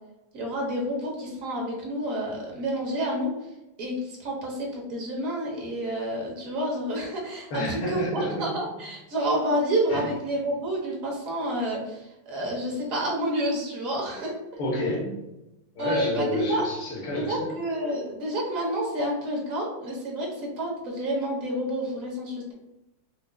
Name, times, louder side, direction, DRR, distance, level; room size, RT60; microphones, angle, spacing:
voice 1, 0.3-3.3 3.8-14.3 15.8-16.7 17.1-20.3 20.6-22.5, right 1 dB, 55° right, -2 dB, 1.0 m, -29 dB
voice 2, 7.5-8.5 9.9-10.1 14.6-15.2 15.8-17.5, left 1 dB, 85° left, -4 dB, 2.0 m, -29 dB
5.1 x 2.4 x 2.2 m, 0.94 s
omnidirectional pair, 2.2 m